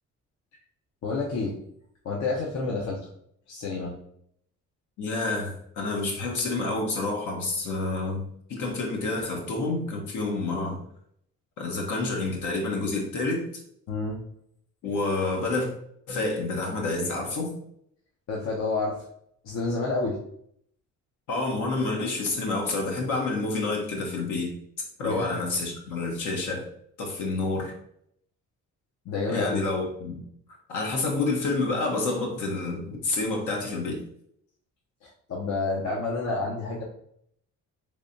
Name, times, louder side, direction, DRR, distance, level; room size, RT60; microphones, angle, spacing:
voice 1, 1.0-1.5 2.0-3.0 3.5-4.0 13.9-14.2 18.3-19.0 19.4-20.2 25.0-25.5 29.0-29.6 35.0-36.8, left 3 dB, 65° left, -3 dB, 0.8 m, -29 dB
voice 2, 5.0-10.8 11.6-13.5 14.8-15.7 16.1-17.5 21.3-24.5 25.0-26.7 27.0-27.7 29.3-30.2 30.7-34.0, left 3 dB, 80° left, 0 dB, 1.1 m, -28 dB
3.3 x 3.3 x 2.7 m, 0.69 s
cardioid pair, 90°, 30 cm